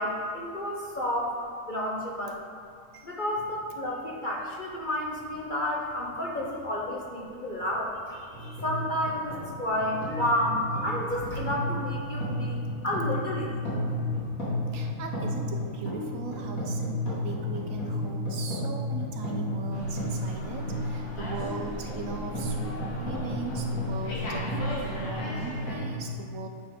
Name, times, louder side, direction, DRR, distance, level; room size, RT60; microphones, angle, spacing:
voice 1, 0.0-1.4 1.7-2.4 3.0-13.8, left 1 dB, 45° left, -3 dB, 0.7 m, -31 dB
voice 2, 2.9-3.2 14.7-24.5 24.9-26.5, right 4 dB, 70° right, 3 dB, 0.9 m, -39 dB
sound 1, 8.3-25.9, left 1 dB, 65° left, 2.4 m, -33 dB
Slam, 19.7-25.8, left 1 dB, 85° left, 1.9 m, -38 dB
9.4 x 3.7 x 5.2 m, 2.4 s
omnidirectional pair, 1.6 m